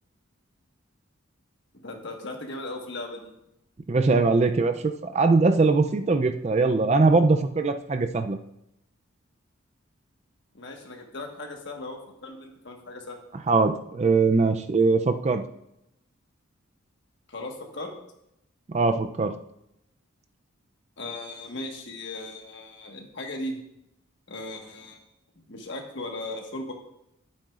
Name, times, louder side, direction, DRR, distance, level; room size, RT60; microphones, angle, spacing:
voice 1, 1.8-3.3 10.5-13.2 17.3-17.9 21.0-23.6 24.3-25.0 25.3-26.7, left 2 dB, 55° left, 2 dB, 1.4 m, -37 dB
voice 2, 3.9-8.4 13.5-15.4 18.7-19.3, right 3 dB, 30° right, 8 dB, 0.4 m, -21 dB
10.5 x 8.6 x 2.4 m, 0.81 s
head